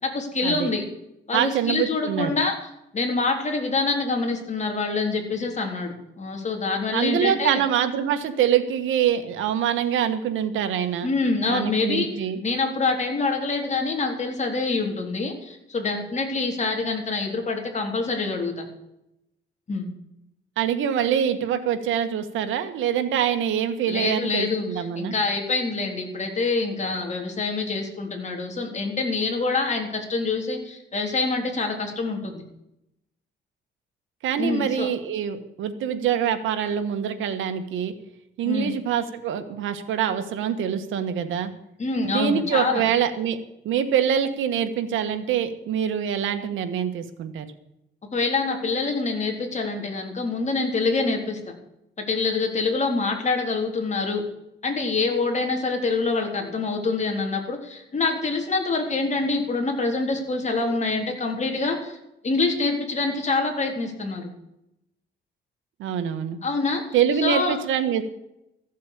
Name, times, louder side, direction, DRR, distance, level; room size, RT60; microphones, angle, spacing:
voice 1, 0.0-0.8 1.3-2.5 2.9-7.6 11.0-12.1 12.4-18.7 19.7-19.9 23.9-32.4 34.4-34.9 38.4-38.7 41.8-42.8 48.1-51.4 52.0-54.2 54.6-62.0 62.2-64.3 66.4-66.8 67.2-67.6, left 3 dB, 35° left, 2 dB, 3.9 m, -26 dB
voice 2, 1.3-2.4 6.9-11.1 11.5-12.4 20.6-25.1 34.2-37.9 38.4-41.5 42.0-43.4 43.6-47.5 65.8-66.4 66.9-68.0, right 8 dB, 85° right, 8 dB, 1.6 m, -25 dB
14.5 x 7.5 x 8.5 m, 0.84 s
cardioid pair, 90°, 20 cm